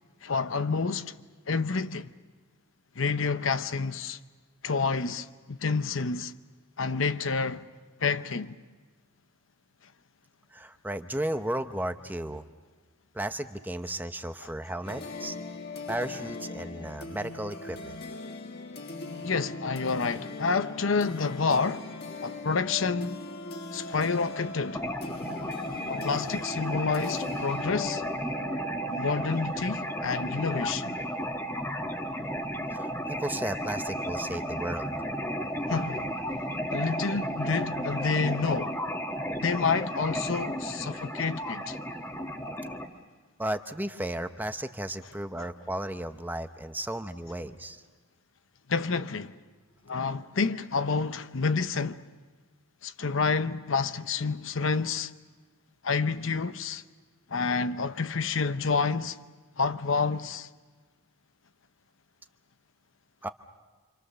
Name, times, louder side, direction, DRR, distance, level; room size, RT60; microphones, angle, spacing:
voice 1, 0.2-1.1 1.5-2.1 2.9-4.2 4.6-6.3 6.8-7.7 8.0-8.6 19.2-21.9 22.2-23.2 23.7-24.8 25.9-28.0 28.9-30.9 35.7-36.1 36.7-38.8 39.4-41.8 48.7-49.4 49.9-52.0 52.8-55.1 55.8-56.8 57.3-59.2 59.6-60.5, left 4 dB, 70° left, 0.8 m, -29 dB
voice 2, 10.5-12.4 13.1-15.4 15.9-18.0 32.7-34.9 43.4-47.8 63.2-63.3, right 1 dB, 10° right, 0.8 m, -34 dB
sound 1, 14.8-31.4, left 3 dB, 50° left, 1.8 m, -40 dB
sound 2, 24.7-42.9, equal, 10° left, 1.6 m, -33 dB
29.0 x 26.0 x 6.8 m
head